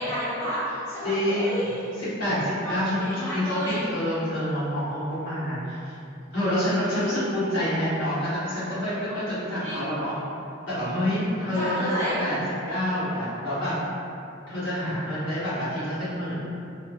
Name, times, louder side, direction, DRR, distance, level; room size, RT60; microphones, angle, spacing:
voice 1, 0.0-1.9 2.6-3.9 6.9-7.2 9.6-10.0 11.4-12.2, equal, 25° left, -19 dB, 1.2 m, -31 dB
voice 2, 1.0-1.7 2.0-3.6 3.8-5.9 6.3-10.2 10.7-11.9 12.2-12.4 12.7-13.7 14.5-16.4, equal, 65° left, -12 dB, 1.2 m, -27 dB
3.0 x 2.1 x 2.6 m, 2.6 s
head